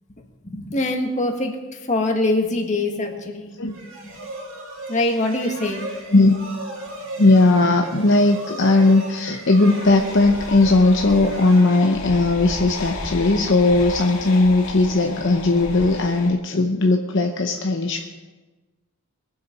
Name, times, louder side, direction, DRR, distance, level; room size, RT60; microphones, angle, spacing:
voice 1, 0.4-1.6 1.9-3.8 4.0-4.2 4.9-5.8, left 2 dB, 35° left, 2 dB, 1.8 m, -23 dB
sound 1, 3.7-12.4, right 2 dB, 65° right, 2.9 m, -36 dB
voice 2, 7.2-18.0, left 2 dB, 60° left, 3 dB, 0.8 m, -17 dB
sound 2, 9.7-16.3, left 2 dB, 90° left, 2.1 m, -33 dB
22.0 x 7.5 x 5.2 m, 1.3 s
head